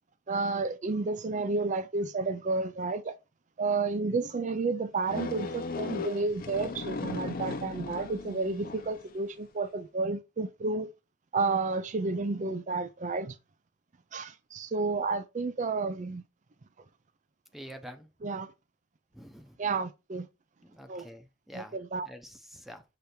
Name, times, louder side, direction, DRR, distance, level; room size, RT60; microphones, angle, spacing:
voice 1, 0.3-3.1 3.6-10.9 11.3-13.4 14.1-16.2 18.2-18.5 19.6-20.3 20.9-21.1 21.5-22.1, right 3 dB, 40° right, 0.5 m, -31 dB
sound 1, 5.1-9.1, left 3 dB, 50° left, 0.7 m, -37 dB
voice 2, 17.5-18.1 19.1-19.6 20.6-21.8 22.0-22.8, equal, ahead, 0.8 m, -47 dB
6.8 x 3.4 x 4.3 m
head